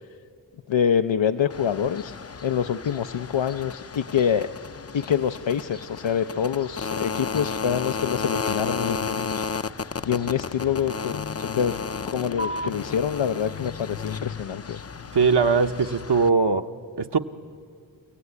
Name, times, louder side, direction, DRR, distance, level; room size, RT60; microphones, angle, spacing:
voice 1, 0.7-2.1 2.4-4.5 4.9-9.4 10.0-11.8 12.1-14.8, left 8 dB, 80° left, 9 dB, 0.6 m, -26 dB
sound 1, 1.5-16.3, left 5 dB, 35° left, 0.5 m, -33 dB
voice 2, 15.1-16.7 17.0-17.2, right 5 dB, 60° right, 6 dB, 1.0 m, -20 dB
30.0 x 16.0 x 9.7 m, 2.1 s
wide cardioid pair, 50°, 45 cm